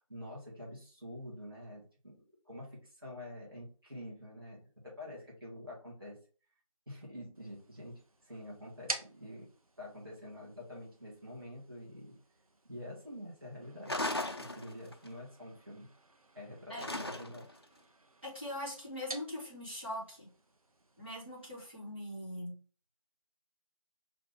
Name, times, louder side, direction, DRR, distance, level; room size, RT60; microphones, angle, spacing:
voice 1, 0.0-6.2 6.9-9.5 9.8-12.2 12.6-13.9 14.3-15.9 16.3-17.5, left 1 dB, 40° right, -5 dB, 1.9 m, -47 dB
sound 1, 7.3-21.7, right 2 dB, 75° right, 0.9 m, -50 dB
sound 2, 13.9-15.1 16.8-17.6, left 1 dB, 45° left, 0.5 m, -36 dB
voice 2, 18.2-20.3 21.0-22.6, left 1 dB, 20° right, -10 dB, 2.1 m, -41 dB
5.7 x 2.7 x 3.5 m, 0.39 s
figure-of-eight pair, 175°, 18 cm